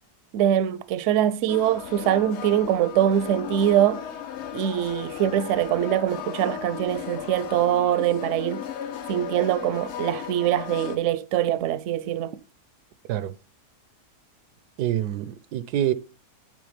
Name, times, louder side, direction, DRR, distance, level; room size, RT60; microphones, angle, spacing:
voice 1, 0.3-4.1 4.5-8.6 9.1-12.4, right 11 dB, 65° right, 0.8 m, -23 dB
sound 1, 1.5-11.0, left 9 dB, 60° left, 0.8 m, -36 dB
voice 2, 14.8-15.9, right 12 dB, 90° right, 1.2 m, -26 dB
8.6 x 3.7 x 5.0 m
omnidirectional pair, 1.6 m